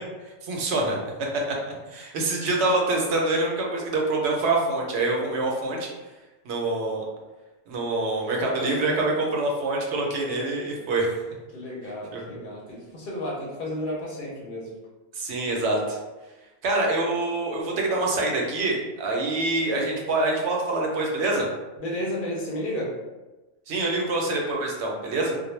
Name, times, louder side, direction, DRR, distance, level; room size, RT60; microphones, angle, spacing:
voice 1, 0.4-1.0 1.9-5.9 6.4-7.1 7.7-11.1 12.1-12.2 15.2-16.0 16.6-21.5 23.7-25.3, right 2 dB, 80° right, -1 dB, 0.9 m, -25 dB
voice 2, 8.4-9.2 11.5-14.8 21.8-23.0, left 1 dB, 55° left, -3 dB, 0.7 m, -32 dB
2.1 x 2.0 x 3.1 m, 1.1 s
omnidirectional pair, 1.1 m